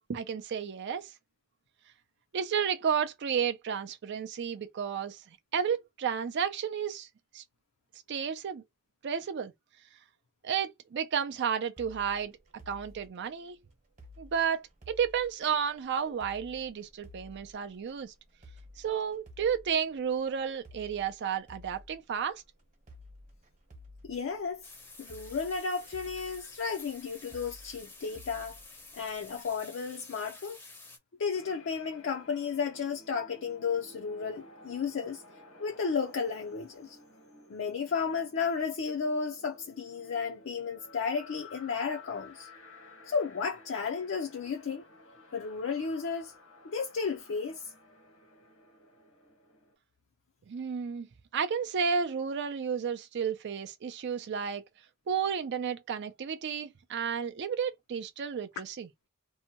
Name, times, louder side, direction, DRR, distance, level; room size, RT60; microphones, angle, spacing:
voice 1, 0.1-1.1 2.3-5.2 5.5-7.1 7.3-7.4 8.1-8.6 9.0-9.5 10.4-12.3 12.7-13.6 14.2-18.1 18.8-22.4 50.5-51.1 51.3-54.6 55.1-58.9, right 7 dB, 55° right, 0.4 m, -32 dB
sound 1, 11.8-29.5, left 1 dB, 40° right, 0.9 m, -54 dB
voice 2, 24.0-24.6 25.0-28.6 28.9-30.6 31.2-35.2 35.6-37.0 37.5-42.5 43.1-44.8 45.3-46.3 46.6-47.7, left 5 dB, 60° left, 0.4 m, -33 dB
sound 2, 24.6-31.0, left 2 dB, 10° left, 0.6 m, -51 dB
sound 3, 31.3-49.7, left 2 dB, 90° left, 1.3 m, -55 dB
2.7 x 2.1 x 2.8 m
head